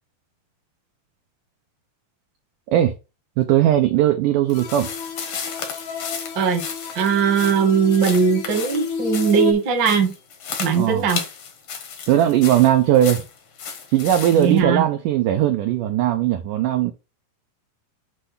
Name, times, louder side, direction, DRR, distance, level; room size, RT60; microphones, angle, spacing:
voice 1, 3.4-4.9 10.7-11.1 12.1-13.2 13.9-16.9, right 12 dB, 80° right, 1.8 m, -18 dB
sound 1, 4.5-9.5, left 6 dB, 85° left, 3.7 m, -31 dB
sound 2, 4.5-14.6, left 6 dB, 60° left, 1.7 m, -34 dB
voice 2, 6.9-10.1 10.6-11.2 14.3-14.8, right 6 dB, 50° right, 1.3 m, -19 dB
8.0 x 3.4 x 5.7 m
omnidirectional pair, 4.7 m